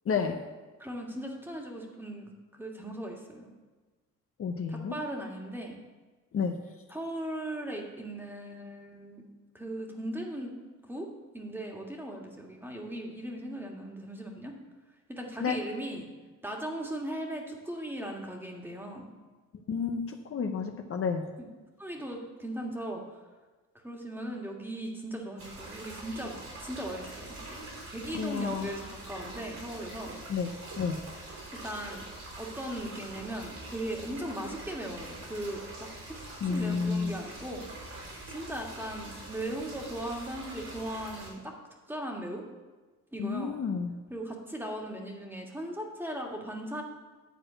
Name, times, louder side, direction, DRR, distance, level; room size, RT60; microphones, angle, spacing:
voice 1, 0.1-0.4 4.4-4.9 6.3-6.6 15.4-15.6 19.7-20.0 20.3-21.2 28.1-28.7 30.3-30.5 30.8-31.0 36.4-37.1 43.2-43.9, left 5 dB, 50° left, 4 dB, 0.8 m, -30 dB
voice 2, 0.8-2.3 2.6-3.5 4.7-5.8 6.9-9.2 9.5-10.5 10.9-11.1 11.3-14.5 15.1-16.1 16.4-19.1 21.4-21.5 21.8-23.2 23.8-27.6 27.8-30.1 31.6-32.1 32.4-37.7 38.3-41.5 41.9-42.4 43.1-43.6 44.1-46.8, right 1 dB, 5° right, 0 dB, 1.8 m, -38 dB
sound 1, 25.4-41.3, right 2 dB, 65° right, 3.5 m, -44 dB
10.0 x 4.3 x 7.8 m, 1.3 s
cardioid pair, 90°, 30 cm